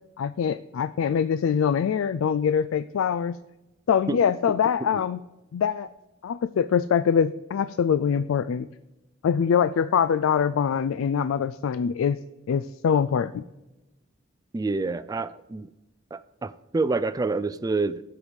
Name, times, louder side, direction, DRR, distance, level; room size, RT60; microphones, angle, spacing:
voice 1, 0.2-3.4 3.9-5.2 5.5-5.9 6.2-8.7 9.2-12.2 12.5-13.4, left 7 dB, 85° left, 14 dB, 0.3 m, -23 dB
voice 2, 14.5-15.7 16.1-18.0, right 3 dB, 20° right, 14 dB, 0.3 m, -27 dB
14.0 x 4.8 x 5.1 m, 1.0 s
head